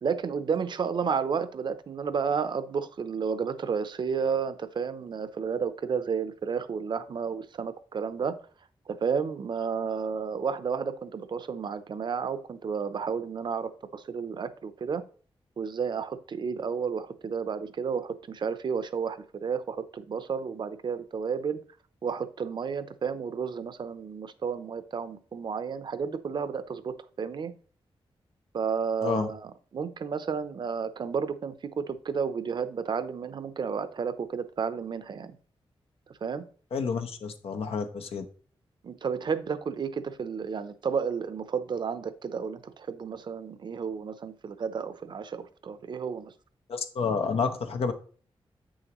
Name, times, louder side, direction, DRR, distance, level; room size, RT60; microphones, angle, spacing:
voice 1, 0.0-8.4 8.9-15.0 15.6-21.6 22.0-27.5 28.5-35.4 36.2-36.4 38.8-46.3, right 6 dB, 55° right, 12 dB, 0.6 m, -32 dB
voice 2, 36.7-38.3 46.7-47.9, left 5 dB, 85° left, 6 dB, 0.9 m, -29 dB
8.4 x 6.3 x 3.0 m, 0.43 s
wide cardioid pair, 160°, 10 cm